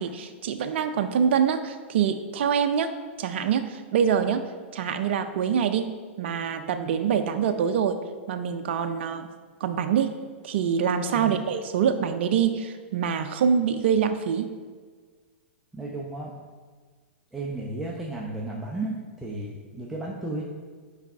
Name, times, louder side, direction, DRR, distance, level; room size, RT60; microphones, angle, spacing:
voice 1, 0.0-2.9 3.2-4.4 4.7-5.9 6.2-8.0 8.3-9.3 9.6-10.1 10.4-14.5, right 7 dB, 65° right, 7 dB, 0.5 m, -25 dB
voice 2, 15.7-16.3 17.3-20.4, right 2 dB, 5° right, -4 dB, 0.8 m, -33 dB
5.7 x 4.8 x 4.5 m, 1.5 s
hypercardioid pair, 115°, 7 cm